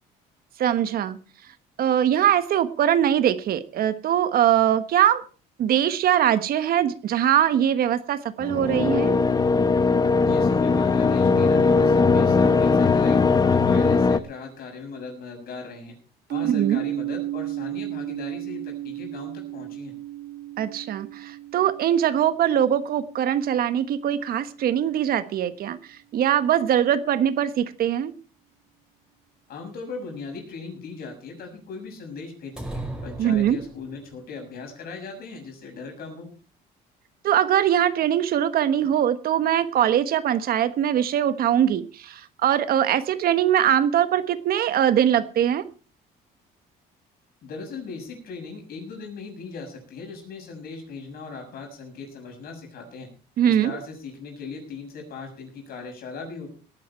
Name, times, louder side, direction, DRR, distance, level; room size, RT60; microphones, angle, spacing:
voice 1, 0.6-1.2 1.8-5.2 5.6-9.2 16.4-16.8 20.6-28.1 33.2-33.6 37.2-45.6 53.4-53.7, right 10 dB, 65° right, 12 dB, 1.3 m, -22 dB
sound 1, 8.4-14.2, left 4 dB, 25° left, 0.8 m, -19 dB
voice 2, 10.2-16.0 16.3-19.9 29.5-36.3 47.4-53.1 53.5-56.5, left 4 dB, 65° left, 3 dB, 6.9 m, -38 dB
sound 2, 16.3-24.1, right 15 dB, 80° right, 0.8 m, -34 dB
sound 3, 32.6-34.2, right 1 dB, 5° right, 4.4 m, -36 dB
18.5 x 11.0 x 4.4 m, 0.37 s
cardioid pair, 110°, 17 cm